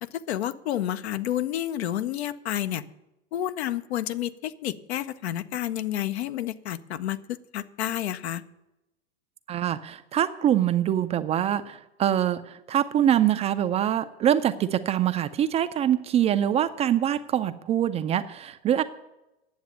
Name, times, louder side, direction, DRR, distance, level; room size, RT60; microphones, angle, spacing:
voice 1, 0.0-2.8 3.3-8.4, left 12 dB, 75° left, 12 dB, 0.8 m, -30 dB
voice 2, 9.5-18.8, right 10 dB, 20° right, 11 dB, 0.4 m, -24 dB
9.6 x 7.2 x 9.1 m, 0.94 s
hypercardioid pair, 110°, 33 cm